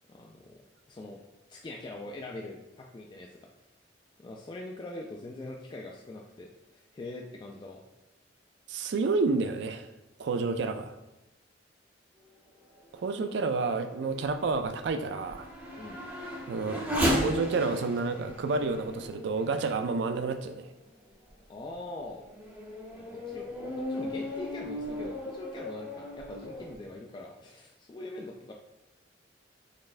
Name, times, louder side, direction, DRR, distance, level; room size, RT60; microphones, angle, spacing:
voice 1, 0.1-0.6 0.9-1.2 1.5-3.3 4.2-7.8 15.8-16.0 21.5-22.3 22.9-23.5 23.9-28.5, left 2 dB, 25° left, 0 dB, 0.3 m, -42 dB
voice 2, 8.7-9.9 10.2-10.9 13.0-15.5 16.5-16.8 17.2-20.7, right 4 dB, 70° right, 9 dB, 0.3 m, -29 dB
Race car auto racing / Accelerating revving vroom, 12.7-20.7 21.3-21.4 22.0-26.8, equal, 10° right, 0.7 m, -36 dB
4.1 x 3.2 x 2.5 m, 0.99 s
head